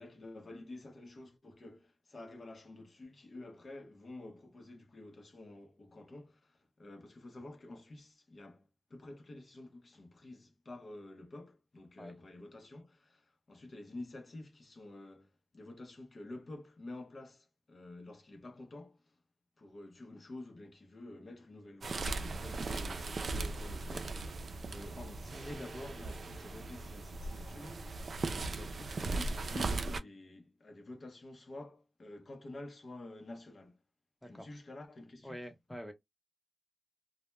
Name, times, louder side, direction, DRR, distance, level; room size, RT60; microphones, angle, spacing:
voice 1, 0.0-19.2 19.6-24.2 24.6-28.2 28.5-33.8 34.2-35.4, left 2 dB, 50° left, 0.6 m, -49 dB
sound 1, 21.8-30.0, right 3 dB, 65° right, 0.3 m, -38 dB
voice 2, 34.2-34.6 35.2-35.9, equal, ahead, 0.7 m, -47 dB
2.1 x 2.0 x 3.0 m
cardioid pair, 65°, 0 cm